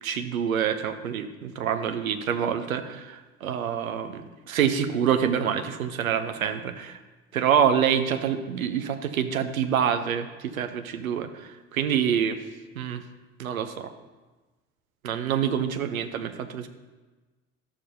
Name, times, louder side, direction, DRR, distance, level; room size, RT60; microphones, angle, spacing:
voice 1, 0.0-6.9 7.3-12.4 12.7-13.0 13.4-13.9 15.0-16.7, right 8 dB, 80° right, 10 dB, 0.6 m, -26 dB
12.0 x 6.8 x 2.6 m, 1.2 s
figure-of-eight pair, 60°, 41 cm